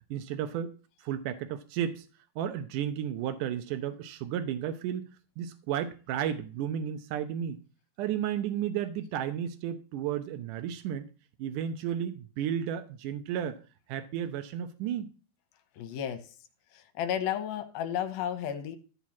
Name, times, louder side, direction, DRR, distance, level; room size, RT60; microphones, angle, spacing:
voice 1, 0.1-2.1 2.4-5.1 5.4-7.6 8.0-11.1 11.4-13.6 13.9-15.1, right 9 dB, 75° right, 1.9 m, -33 dB
voice 2, 15.8-16.3 16.7-18.8, left 9 dB, 75° left, 2.7 m, -33 dB
13.5 x 4.5 x 7.1 m
omnidirectional pair, 4.6 m